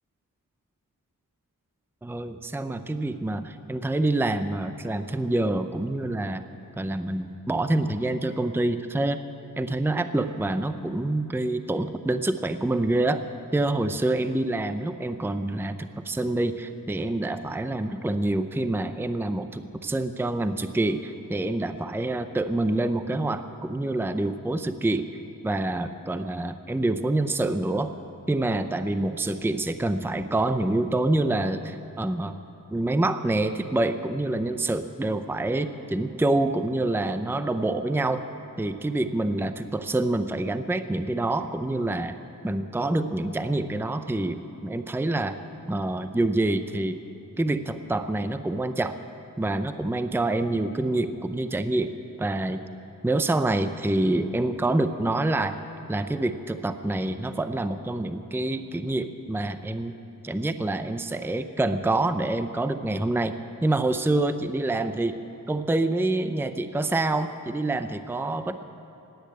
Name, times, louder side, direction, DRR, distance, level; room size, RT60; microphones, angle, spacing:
voice 1, 2.0-6.4 6.8-9.2 9.6-13.2 13.5-25.1 25.4-27.9 28.3-32.4 32.7-38.2 38.6-42.2 42.4-45.4 45.7-47.0 47.4-49.0 49.4-51.9 52.2-52.6 53.0-55.6 55.9-59.9 60.2-63.3 63.6-65.2 65.5-68.6, right 2 dB, 5° right, 10 dB, 0.6 m, -26 dB
16.0 x 10.5 x 8.7 m, 2.8 s
wide cardioid pair, 70°, 34 cm